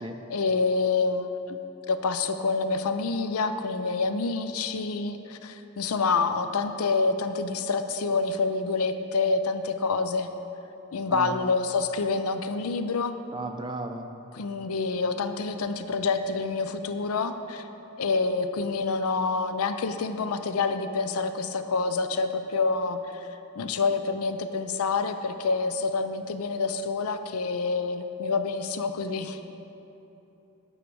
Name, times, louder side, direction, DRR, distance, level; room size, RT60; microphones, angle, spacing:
voice 1, 0.3-1.6 1.9-10.3 10.9-13.2 14.3-17.6 18.0-23.3 23.6-29.4, left 4 dB, 80° left, 9 dB, 0.5 m, -27 dB
voice 2, 13.3-14.1, right 2 dB, 20° right, 6 dB, 0.5 m, -34 dB
9.9 x 5.2 x 6.1 m, 3.0 s
head